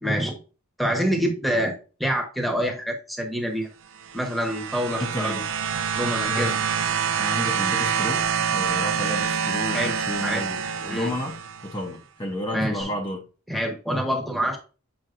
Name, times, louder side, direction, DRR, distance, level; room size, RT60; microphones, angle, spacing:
voice 1, 0.0-0.4 0.8-1.7 2.0-3.7 4.1-5.4 5.9-6.5 9.7-10.0 10.2-10.4 10.9-11.1 12.5-12.9 13.5-14.6, equal, ahead, 1.0 m, -26 dB
sound 1, 4.0-11.8 12.8-12.9, right 7 dB, 60° right, 0.5 m, -26 dB
voice 2, 4.9-5.5 6.3-6.6 7.2-8.3 8.5-13.2, left 1 dB, 20° left, 0.7 m, -31 dB
7.7 x 5.0 x 2.5 m
head